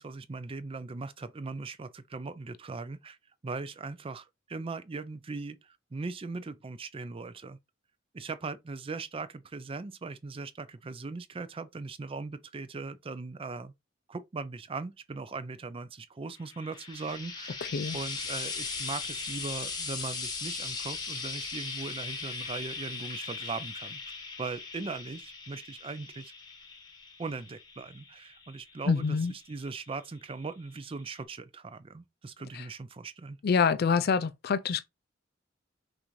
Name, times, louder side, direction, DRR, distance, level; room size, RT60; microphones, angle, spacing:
voice 1, 0.0-3.2 3.4-7.6 8.1-13.7 14.1-17.6 17.9-24.0 24.4-26.3 27.2-33.4, right 4 dB, 30° right, 0.4 m, -39 dB
Frying (food), 16.4-29.8 30.8-30.9, left 4 dB, 20° left, 1.0 m, -39 dB
voice 2, 17.6-18.0 28.9-29.3 32.5-32.7 33.4-34.8, left 5 dB, 55° left, 0.4 m, -26 dB
5.7 x 2.6 x 3.1 m
head